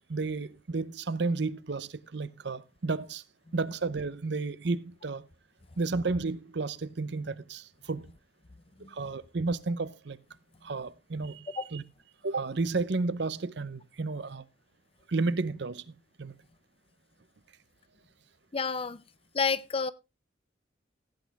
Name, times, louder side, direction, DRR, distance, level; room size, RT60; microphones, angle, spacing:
voice 1, 0.1-3.2 3.5-5.3 5.8-8.1 8.9-10.2 10.6-11.8 12.2-14.5 15.1-15.8 16.2-16.3, right 3 dB, 65° right, 0.7 m, -32 dB
voice 2, 18.5-19.0 19.3-19.9, left 5 dB, 30° left, 0.6 m, -29 dB
15.5 x 8.4 x 3.4 m
head